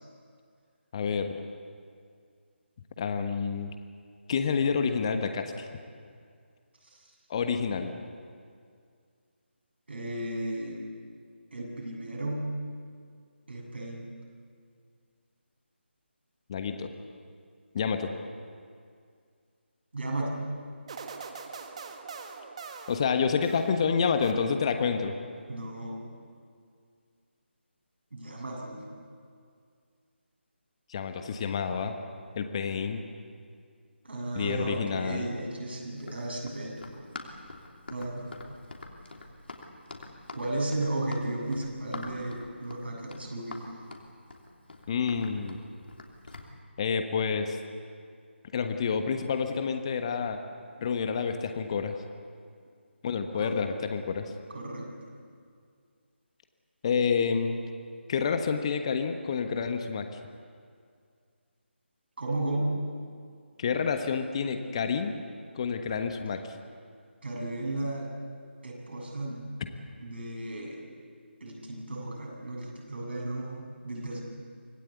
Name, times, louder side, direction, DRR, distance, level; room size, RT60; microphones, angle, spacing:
voice 1, 0.9-1.4 3.0-3.7 4.3-5.6 7.3-7.9 16.5-16.9 17.7-18.1 22.9-25.1 30.9-31.9 32.3-33.0 34.3-35.3 44.9-45.6 46.8-47.6 48.5-50.4 50.8-51.9 53.0-54.3 56.8-57.6 58.1-60.0 63.6-65.2 65.5-66.5, left 6 dB, 30° left, 7 dB, 1.3 m, -28 dB
voice 2, 6.8-7.1 9.9-10.9 11.5-12.5 13.5-14.1 19.9-20.5 25.5-26.0 28.1-28.9 34.0-36.8 37.9-38.3 40.3-43.7 53.3-53.6 54.5-54.9 62.2-62.7 67.2-68.1 68.6-69.6 70.0-70.8 71.4-74.2, right 1 dB, 60° right, -2 dB, 8.0 m, -34 dB
sound 1, 20.9-23.8 24.2-24.9, right 5 dB, 30° right, 1.5 m, -43 dB
Run, 36.0-46.5, left 2 dB, 60° left, 3.0 m, -44 dB
25.5 x 17.5 x 8.3 m, 2.2 s
figure-of-eight pair, 155°, 6 cm